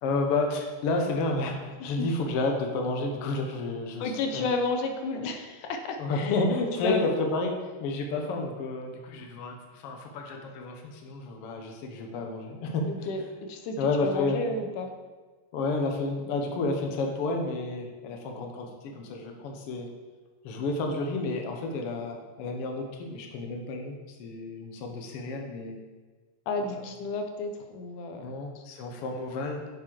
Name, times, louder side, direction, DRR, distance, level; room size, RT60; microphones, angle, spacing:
voice 1, 0.0-4.5 5.1-5.2 6.0-13.1 13.8-14.4 15.5-19.9 20.4-25.8 26.7-26.8 28.2-29.7, left 3 dB, 60° left, 2 dB, 1.8 m, -31 dB
voice 2, 4.0-6.4 6.8-7.1 12.9-13.2 13.5-14.9 26.5-28.6, left 3 dB, 85° left, 5 dB, 2.5 m, -32 dB
7.6 x 7.4 x 4.8 m, 1.4 s
omnidirectional pair, 3.6 m